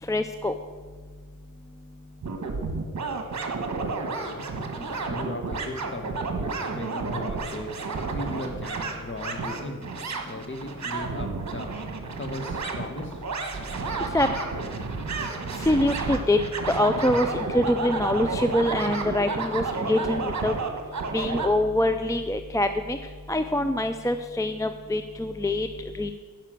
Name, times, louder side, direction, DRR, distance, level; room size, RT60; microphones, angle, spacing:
voice 1, 0.1-0.5 14.1-14.3 15.6-16.4 16.7-20.5 21.1-23.0 23.3-25.7 25.9-26.1, left 1 dB, 10° left, 8 dB, 0.4 m, -24 dB
sound 1, 2.2-21.5, right 4 dB, 55° right, 1.4 m, -31 dB
voice 2, 3.7-4.5 4.8-9.8 10.2-11.8 12.2-13.2, left 2 dB, 35° left, 5 dB, 1.5 m, -38 dB
10.0 x 5.7 x 7.6 m, 1.5 s
cardioid pair, 70°, 34 cm